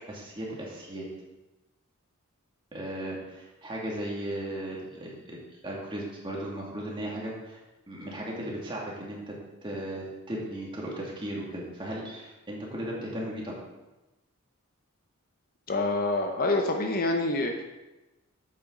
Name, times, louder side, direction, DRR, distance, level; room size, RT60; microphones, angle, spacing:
voice 1, 0.1-1.1 2.7-7.6 7.9-9.4 9.6-13.6, right 1 dB, 20° right, -3 dB, 2.1 m, -36 dB
voice 2, 15.7-17.6, left 2 dB, 40° left, 3 dB, 0.7 m, -26 dB
9.3 x 7.6 x 3.8 m, 1.0 s
head